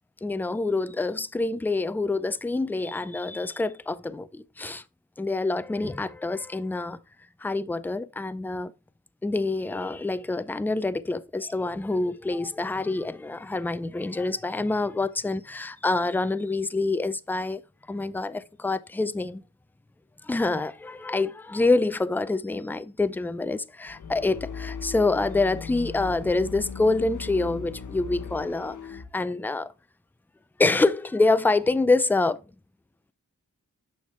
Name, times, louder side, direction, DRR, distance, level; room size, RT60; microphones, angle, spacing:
voice 1, 0.2-4.8 5.2-7.0 7.4-8.7 9.2-17.6 17.9-19.4 20.2-29.7 30.6-32.4, left 3 dB, 5° left, 0.4 m, -26 dB
sound 1, 23.8-29.1, left 6 dB, 55° left, 0.9 m, -38 dB
6.2 x 5.7 x 3.2 m
cardioid pair, 45°, 35 cm